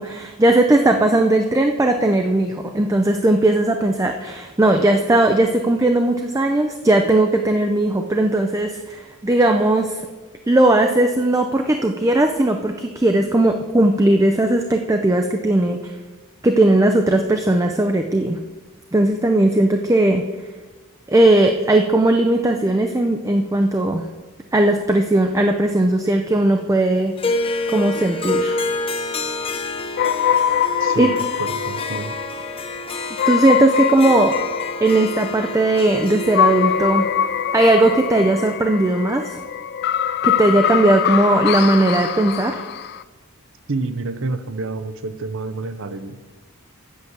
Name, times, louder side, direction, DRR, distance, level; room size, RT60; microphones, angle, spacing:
voice 1, 0.0-10.0 10.5-15.9 16.4-18.4 18.9-20.3 21.1-24.0 24.5-27.2 27.7-28.6 31.0-31.1 33.3-34.4 34.8-37.1 37.5-39.4 40.2-42.6, right 1 dB, 15° right, 5 dB, 0.5 m, -17 dB
Harp, 27.2-38.5, left 2 dB, 25° left, 0.7 m, -28 dB
sound 1, 30.0-43.0, left 9 dB, 45° left, 0.3 m, -23 dB
voice 2, 30.8-32.1 43.7-46.2, right 3 dB, 60° right, 11 dB, 0.7 m, -28 dB
8.2 x 6.0 x 8.0 m, 1.3 s
head